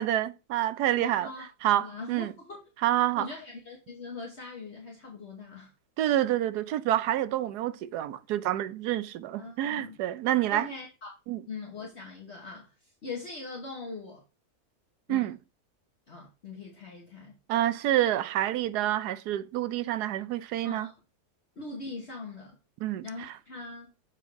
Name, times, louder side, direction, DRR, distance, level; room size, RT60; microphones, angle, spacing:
voice 1, 0.0-1.3 1.6-2.3 2.8-3.3 6.0-10.7 11.3-11.4 15.1-15.4 17.5-20.9 22.8-23.3, right 13 dB, 85° right, 1.2 m, -28 dB
voice 2, 1.0-1.5 1.8-2.6 3.2-5.7 9.4-10.0 10.5-11.1 11.5-14.2 15.1-15.3 16.1-17.3 20.6-21.0 21.6-22.6 23.0-23.9, left 3 dB, 45° left, 1.5 m, -41 dB
7.0 x 4.5 x 4.6 m
omnidirectional pair, 1.7 m